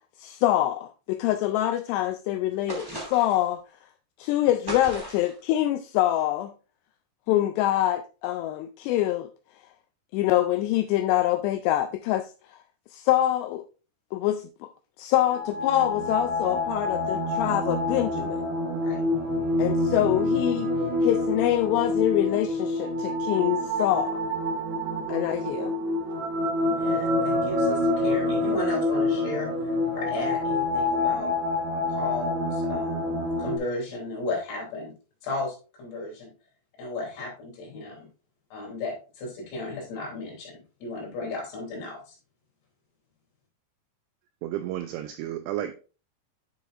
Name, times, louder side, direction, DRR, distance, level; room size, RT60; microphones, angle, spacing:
voice 1, 0.2-3.6 4.2-6.5 7.3-9.3 10.1-12.3 12.9-13.6 14.1-14.7 15.0-18.4 19.6-20.7 21.0-24.2 25.1-25.7, left 13 dB, 90° left, 2.4 m, -25 dB
sound 1, 2.7-3.5 4.7-5.4, right 1 dB, 15° right, 0.8 m, -36 dB
sound 2, 15.2-33.6, left 2 dB, 65° right, 3.1 m, -27 dB
voice 2, 26.6-29.5 29.9-31.3 31.9-34.9 35.2-36.3 36.8-38.1 38.5-42.2, left 2 dB, 60° left, 4.9 m, -34 dB
voice 3, 44.4-45.7, right 12 dB, 85° right, 2.4 m, -32 dB
9.2 x 6.8 x 2.5 m
omnidirectional pair, 5.4 m